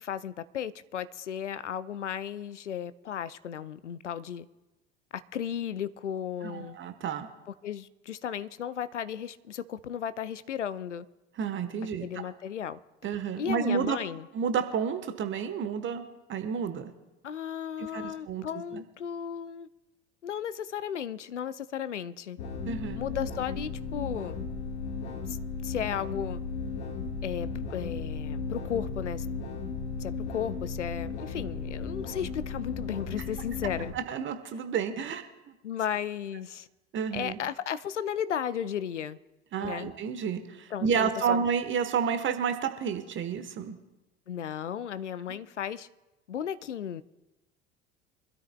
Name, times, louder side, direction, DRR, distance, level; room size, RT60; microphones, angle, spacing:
voice 1, 0.0-4.5 5.1-6.8 7.6-11.1 12.0-12.8 13.4-14.3 17.2-19.7 20.2-22.4 23.0-24.4 25.3-25.4 25.6-26.4 27.2-29.3 30.0-33.9 35.6-36.7 37.1-39.2 39.6-39.9 40.7-41.4 44.3-45.9 46.3-47.0, left 9 dB, 85° left, 0.5 m, -35 dB
voice 2, 6.4-7.3 11.4-12.1 13.0-14.0 14.3-16.0 16.3-16.9 17.8-18.4 18.7-18.8 22.6-23.0 33.9-35.5 36.9-37.4 39.5-43.8, right 7 dB, 35° right, 1.2 m, -30 dB
sound 1, 22.4-33.9, left 4 dB, 65° left, 1.7 m, -35 dB
25.5 x 13.0 x 2.2 m
figure-of-eight pair, 70°, 35 cm